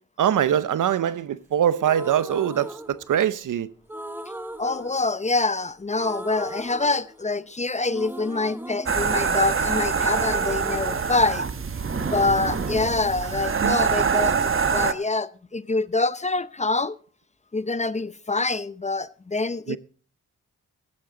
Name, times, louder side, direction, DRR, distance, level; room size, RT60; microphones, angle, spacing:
voice 1, 0.2-3.7 19.7-19.8, right 10 dB, 70° right, 0.9 m, -23 dB
sound 1, 1.8-3.4 3.9-5.6 5.9-7.5 7.9-11.6 11.9-13.9, right 1 dB, 5° right, 1.1 m, -38 dB
voice 2, 4.6-11.4 12.1-17.0 17.5-19.8, left 3 dB, 20° left, 0.7 m, -25 dB
sound 2, 8.9-14.9, right 5 dB, 40° right, 1.1 m, -24 dB
15.0 x 11.5 x 3.9 m
cardioid pair, 60°, 32 cm